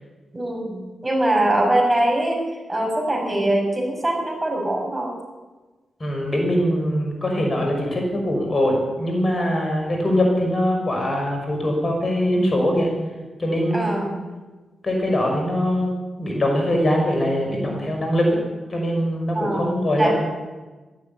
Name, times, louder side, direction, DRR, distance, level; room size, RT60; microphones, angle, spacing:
voice 1, 0.3-5.1 13.7-14.2 19.3-20.2, right 1 dB, 20° right, 1 dB, 5.7 m, -23 dB
voice 2, 6.0-12.9 13.4-14.0 14.8-15.9 16.2-18.4 18.7-20.2, equal, 40° left, 1 dB, 5.7 m, -22 dB
13.5 x 11.5 x 8.6 m, 1.2 s
supercardioid pair, 50°, 0 cm